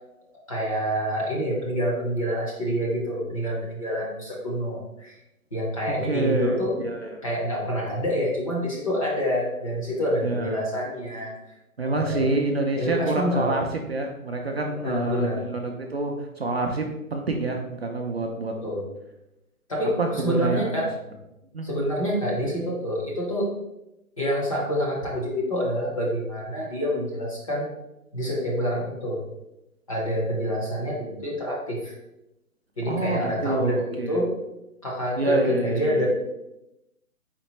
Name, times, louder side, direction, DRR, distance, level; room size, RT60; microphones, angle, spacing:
voice 1, 0.5-5.2 5.5-6.8 7.2-11.4 11.9-12.3 12.7-13.6 14.8-15.5 18.6-18.9 19.7-21.0 21.6-23.5 24.2-27.7 28.1-29.2 29.9-31.9 32.8-34.3 34.8-36.1, equal, 25° left, -4 dB, 0.7 m, -27 dB
voice 2, 5.9-7.2 10.2-10.6 11.8-18.5 20.0-20.7 21.5-21.7 32.9-34.2 35.2-36.0, right 2 dB, 45° right, 2 dB, 0.4 m, -27 dB
4.3 x 3.3 x 3.0 m, 0.90 s
hypercardioid pair, 155°, 43 cm